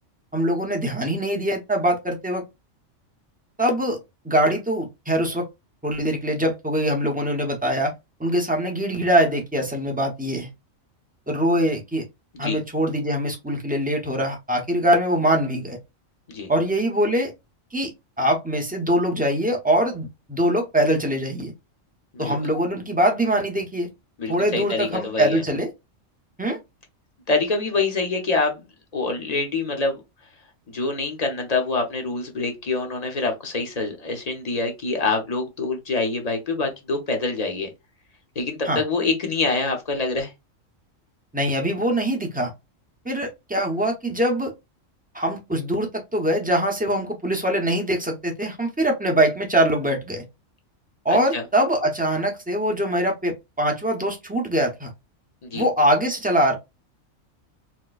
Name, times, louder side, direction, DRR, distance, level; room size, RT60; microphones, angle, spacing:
voice 1, 0.3-2.4 3.6-4.0 4.2-5.4 5.8-7.9 8.2-10.5 11.3-12.0 12.4-15.8 16.5-17.3 17.7-17.9 18.2-21.5 22.2-23.9 24.3-25.7 26.4-26.6 38.6-38.8 41.3-42.5 43.0-44.5 45.1-50.2 51.0-54.9 55.5-56.6, equal, 10° right, 0.6 m, -23 dB
voice 2, 24.2-25.4 27.3-28.6 28.9-30.0 30.7-37.7 38.4-40.3 51.1-51.4 55.4-55.6, left 3 dB, 35° left, 0.8 m, -25 dB
4.4 x 2.2 x 2.4 m
omnidirectional pair, 1.3 m